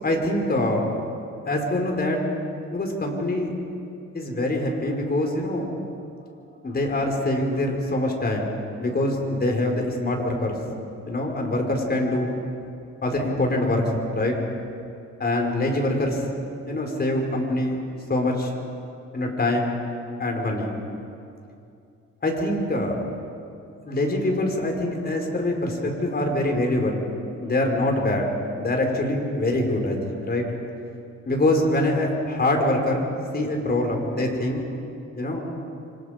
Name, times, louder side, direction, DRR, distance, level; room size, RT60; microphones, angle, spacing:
voice 1, 0.0-0.9 1.5-2.2 2.7-3.5 4.1-5.7 6.6-10.6 11.1-12.3 13.0-14.4 15.2-16.3 16.7-17.8 18.1-18.5 19.1-19.8 20.2-20.7 22.2-23.0 23.9-27.0 27.4-30.5 31.3-34.6 35.2-35.5, left 1 dB, 30° left, 2 dB, 5.4 m, -24 dB
28.5 x 25.5 x 5.3 m, 2.5 s
cardioid pair, 90°, 30 cm